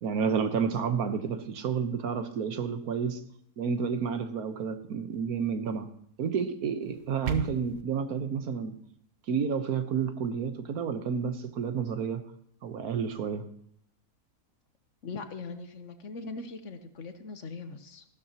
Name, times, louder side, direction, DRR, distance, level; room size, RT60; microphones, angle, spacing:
voice 1, 0.0-3.2 3.6-5.9 6.2-8.7 9.3-12.2 12.6-13.4, right 6 dB, 75° right, 9 dB, 1.5 m, -30 dB
sound 1, 6.8-7.8, right 5 dB, 55° right, 0.9 m, -37 dB
voice 2, 15.0-18.0, left 4 dB, 55° left, 8 dB, 1.2 m, -40 dB
14.0 x 12.5 x 2.9 m, 0.68 s
omnidirectional pair, 1.6 m